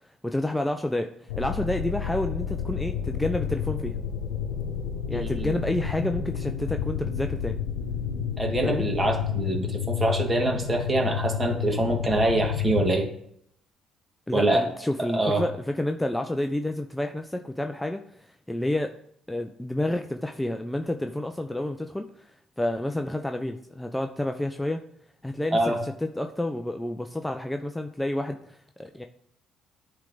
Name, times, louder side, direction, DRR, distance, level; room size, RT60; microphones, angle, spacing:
voice 1, 0.2-4.0 5.1-7.6 8.6-8.8 14.3-18.9 19.3-22.3 22.6-24.8 25.2-29.0, left 1 dB, 10° left, 5 dB, 0.5 m, -29 dB
sound 1, 1.3-13.0, left 7 dB, 90° left, 0.8 m, -30 dB
voice 2, 5.1-5.6 8.4-13.1 14.3-14.6 15.1-15.4 25.5-25.8, right 2 dB, 30° right, 2 dB, 2.1 m, -25 dB
10.0 x 3.4 x 3.9 m, 0.70 s
hypercardioid pair, 60°, 0 cm